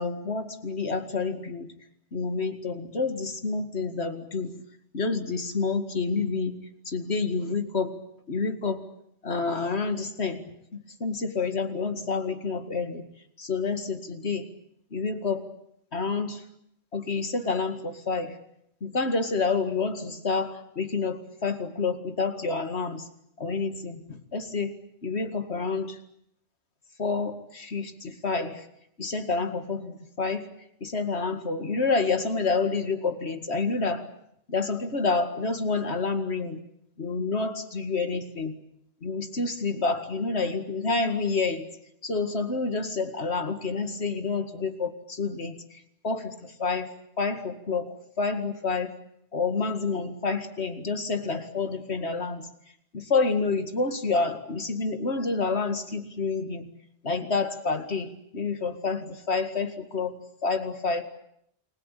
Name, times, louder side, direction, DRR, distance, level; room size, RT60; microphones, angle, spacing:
voice 1, 0.0-1.7 2.1-4.5 4.9-6.6 6.9-7.9 8.3-8.8 9.2-13.0 13.4-14.5 14.9-15.5 15.9-16.4 16.9-18.4 18.8-23.1 23.4-24.7 25.0-26.0 27.0-28.7 29.0-30.5 30.8-34.0 34.5-36.6 37.0-38.5 39.0-41.7 42.0-46.9 47.2-48.9 49.3-52.5 52.9-56.7 57.0-60.1 60.4-61.0, left 4 dB, 70° left, 8 dB, 2.4 m, -28 dB
29.0 x 21.5 x 8.4 m, 0.75 s
omnidirectional pair, 1.2 m